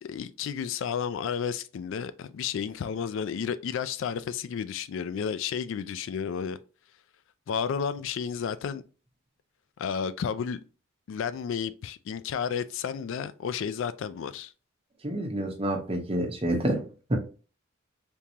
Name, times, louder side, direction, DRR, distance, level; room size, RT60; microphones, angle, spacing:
voice 1, 0.0-6.6 7.5-8.8 9.8-10.6 11.1-14.5, left 7 dB, 65° left, 0.3 m, -32 dB
voice 2, 15.0-17.2, right 1 dB, 30° right, 0.9 m, -28 dB
3.6 x 2.9 x 2.7 m
head